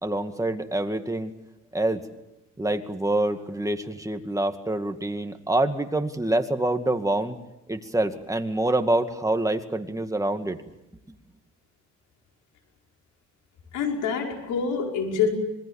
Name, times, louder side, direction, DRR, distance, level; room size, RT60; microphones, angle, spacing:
voice 1, 0.0-1.3 1.7-2.0 2.6-7.4 7.7-10.6, right 1 dB, 10° right, 6 dB, 2.2 m, -26 dB
voice 2, 13.7-15.3, left 6 dB, 90° left, 2 dB, 5.3 m, -26 dB
26.0 x 22.0 x 7.2 m, 0.92 s
cardioid pair, 90°, 30 cm